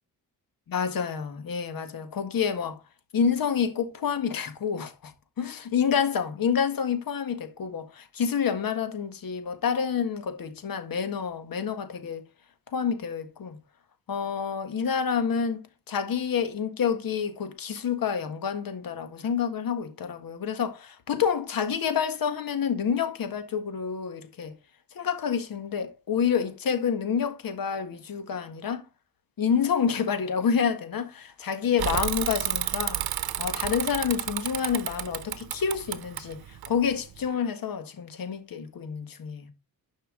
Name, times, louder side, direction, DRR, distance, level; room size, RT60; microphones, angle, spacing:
voice 1, 0.7-2.8 3.1-5.1 5.4-12.3 12.7-13.6 14.1-15.6 15.9-24.5 24.9-28.8 29.4-33.0 33.4-39.5, left 7 dB, 65° left, 1.6 m, -28 dB
Bicycle / Mechanisms, 31.8-37.2, right 12 dB, 80° right, 0.9 m, -31 dB
10.5 x 5.6 x 3.8 m
cardioid pair, 90°, 37 cm